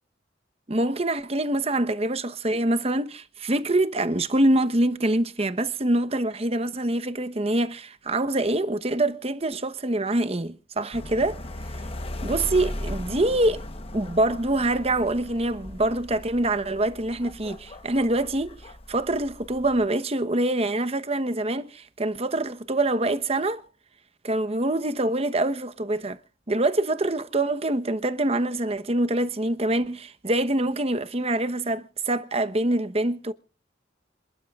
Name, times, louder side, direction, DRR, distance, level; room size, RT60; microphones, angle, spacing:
voice 1, 0.7-11.4 12.2-13.6 13.9-23.6 24.2-26.2 26.5-33.3, right 1 dB, 35° right, 1.0 m, -25 dB
sound 1, 10.9-19.9, left 1 dB, 30° left, 1.0 m, -38 dB
27.5 x 12.0 x 2.4 m
head